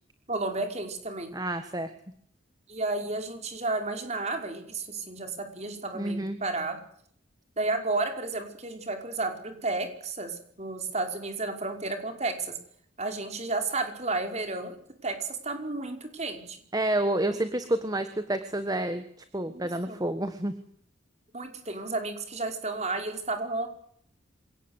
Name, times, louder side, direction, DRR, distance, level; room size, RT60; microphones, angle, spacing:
voice 1, 0.3-1.4 2.7-6.8 7.6-12.5 13.0-16.6 19.5-19.6 19.9-20.0 21.3-23.7, right 3 dB, 35° right, 5 dB, 5.1 m, -32 dB
voice 2, 1.3-1.9 5.9-6.4 16.7-19.0 19.3-20.5, right 1 dB, 20° right, 10 dB, 1.5 m, -29 dB
26.5 x 18.0 x 8.2 m, 0.64 s
head